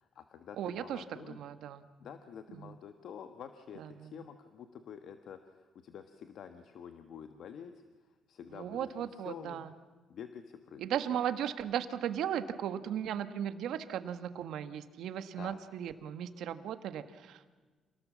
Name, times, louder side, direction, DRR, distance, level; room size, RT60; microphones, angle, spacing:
voice 1, 0.0-1.4 2.0-9.6 10.1-10.8 15.3-15.6, left 8 dB, 70° left, 8 dB, 1.3 m, -48 dB
voice 2, 0.6-1.8 2.6-2.8 3.8-4.1 8.5-9.7 10.8-17.5, right 9 dB, 80° right, 11 dB, 1.3 m, -36 dB
27.5 x 19.0 x 7.4 m, 1.3 s
cardioid pair, 90°, 0 cm